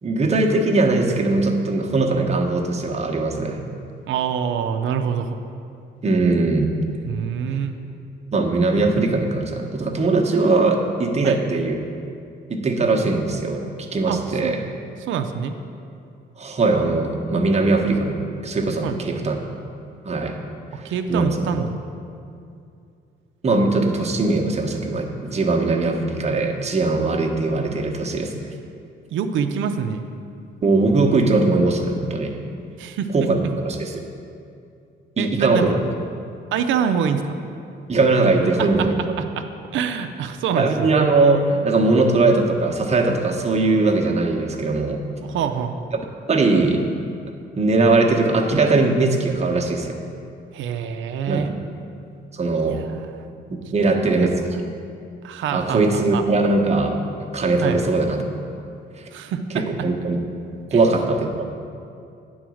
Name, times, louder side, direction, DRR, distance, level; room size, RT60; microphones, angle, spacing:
voice 1, 0.0-3.6 6.0-6.7 7.5-7.6 8.3-11.8 12.5-13.7 13.9-14.6 16.4-19.4 20.0-20.4 20.8-21.6 23.4-28.3 30.6-32.4 33.1-34.1 35.2-35.8 37.9-39.1 40.5-45.0 45.9-46.0 46.3-46.8 47.6-50.0 51.3-51.5 52.3-52.8 53.5-54.4 55.5-57.0 57.3-58.3 58.6-58.7 59.0-59.1 59.5-60.2 60.7-61.5, right 3 dB, 35° right, 1 dB, 1.0 m, -20 dB
voice 2, 4.1-5.4 7.0-7.8 11.2-11.4 14.1-14.5 15.0-15.5 18.8-19.0 20.7-21.7 29.1-30.1 32.8-33.1 35.2-35.7 36.5-37.2 38.6-38.7 39.2-39.5 39.7-40.9 45.2-45.8 50.5-51.5 52.6-52.8 54.2-54.3 55.2-55.8 56.1-56.2 57.6-57.8 59.1-59.6 60.7-60.8, right 7 dB, 75° right, 7 dB, 0.5 m, -25 dB
9.1 x 3.9 x 6.3 m, 2.5 s
cardioid pair, 90°, 20 cm